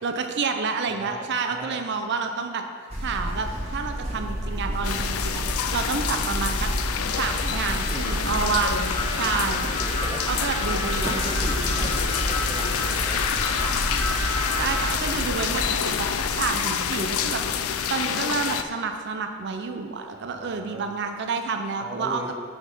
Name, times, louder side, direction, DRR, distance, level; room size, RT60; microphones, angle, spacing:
voice 1, 0.0-2.6 3.0-6.7 7.1-8.9 9.2-9.7 10.3-11.3 14.6-17.6 17.9-22.3, right 5 dB, 55° right, 6 dB, 0.5 m, -29 dB
voice 2, 0.9-1.8 7.5-8.2 9.0-9.3 9.8-10.5 10.8-13.3 17.3-17.6 20.1-20.9 21.8-22.3, right 1 dB, 10° right, 2 dB, 0.6 m, -39 dB
sound 1, 2.9-17.8, equal, 30° right, 1.9 m, -31 dB
sound 2, 4.8-18.6, left 8 dB, 75° left, 0.4 m, -28 dB
sound 3, 6.7-14.9, left 1 dB, 25° left, 0.9 m, -32 dB
6.2 x 5.8 x 5.4 m, 2.1 s
head